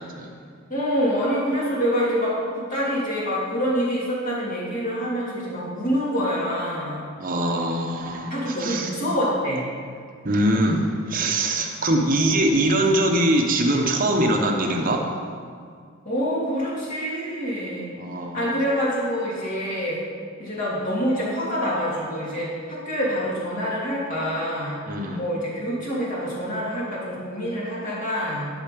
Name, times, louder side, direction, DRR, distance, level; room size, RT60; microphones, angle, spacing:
voice 1, 0.7-7.1 8.3-9.7 16.0-17.9 18.3-20.0 20.4-24.8 25.2-28.5, equal, 40° left, -6 dB, 2.6 m, -26 dB
voice 2, 7.2-8.9 10.2-15.0 18.0-18.5 24.9-25.2, right 1 dB, 40° right, 2 dB, 1.0 m, -22 dB
12.0 x 5.7 x 5.2 m, 2.1 s
head